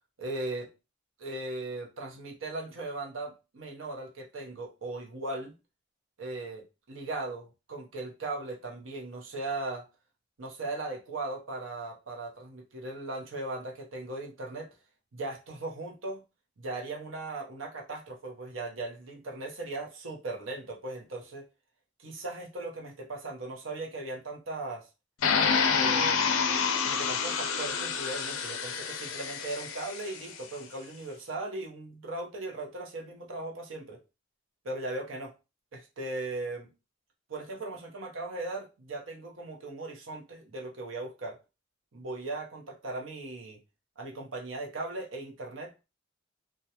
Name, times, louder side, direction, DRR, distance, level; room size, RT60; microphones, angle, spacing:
voice 1, 0.2-0.7 1.2-5.5 6.2-9.9 10.4-14.7 15.1-16.2 16.6-21.4 22.0-24.9 25.7-34.0 34.6-35.3 35.7-36.7 37.3-41.4 41.9-43.6 44.0-45.7, right 2 dB, 70° right, 1 dB, 0.7 m, -38 dB
sound 1, 25.2-30.2, left 6 dB, 85° left, 0.4 m, -28 dB
2.3 x 2.1 x 2.8 m, 0.28 s
head